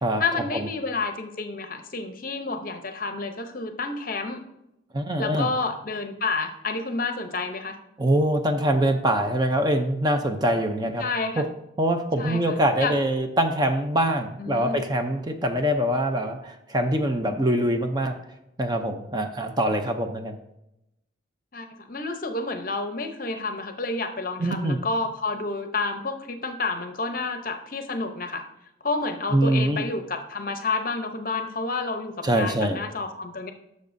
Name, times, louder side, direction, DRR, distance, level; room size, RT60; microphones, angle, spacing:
voice 1, 0.2-4.4 5.2-7.8 11.0-11.4 12.2-12.9 14.4-14.8 21.5-28.4 28.8-33.5, left 3 dB, 45° left, 6 dB, 0.8 m, -30 dB
voice 2, 4.9-5.5 8.0-11.0 11.4-11.5 11.8-18.2 18.6-20.4 24.4-24.8 29.3-29.8 32.2-32.8, right 1 dB, 20° right, 6 dB, 0.6 m, -24 dB
12.0 x 6.4 x 2.6 m, 0.85 s
head